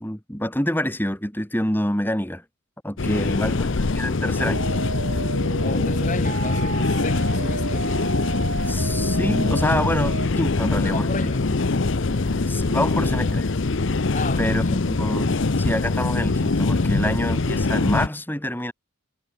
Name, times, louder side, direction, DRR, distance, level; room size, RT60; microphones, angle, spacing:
voice 1, 0.0-2.4 2.8-4.7 8.7-11.3 12.5-13.4 14.4-18.7, left 1 dB, 10° left, 2.6 m, -27 dB
sound 1, 3.0-18.1, left 3 dB, 60° left, 0.8 m, -23 dB
voice 2, 3.1-3.7 5.6-8.0 10.7-11.5 13.0-13.1 14.1-15.0, left 2 dB, 35° left, 1.7 m, -32 dB
sound 2, 4.4-10.3, right 3 dB, 75° right, 2.7 m, -32 dB
Male speech man speaking, 5.6-7.8 8.8-10.7 11.6-13.6, right 1 dB, 45° right, 5.0 m, -47 dB
head